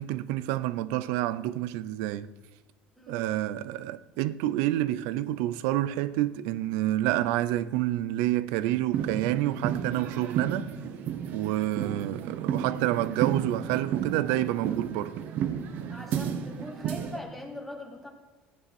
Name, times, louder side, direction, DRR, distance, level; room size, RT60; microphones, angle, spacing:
voice 1, 0.0-2.3 3.1-10.7 11.3-15.2, right 14 dB, 85° right, 0.6 m, -28 dB
sound 1, 8.9-17.2, right 8 dB, 55° right, 1.1 m, -32 dB
voice 2, 15.9-18.1, left 1 dB, ahead, 2.4 m, -41 dB
14.5 x 9.8 x 4.3 m
cardioid pair, 135°, 4 cm